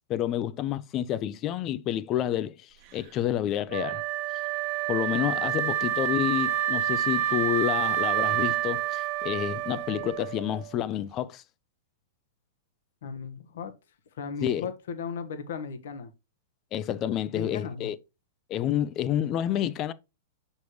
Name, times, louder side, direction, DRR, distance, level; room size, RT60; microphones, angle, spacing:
voice 1, 0.1-4.1 4.9-11.4 14.4-14.7 16.7-18.0 18.5-19.9, left 11 dB, 30° left, 0.5 m, -29 dB
Wind instrument woodwind instrument, 3.7-10.7, right 11 dB, 40° right, 1.1 m, -28 dB
voice 2, 13.0-13.7 14.1-16.1 17.3-17.9, left 6 dB, 75° left, 1.2 m, -36 dB
6.3 x 5.3 x 3.1 m
supercardioid pair, 155°, 0 cm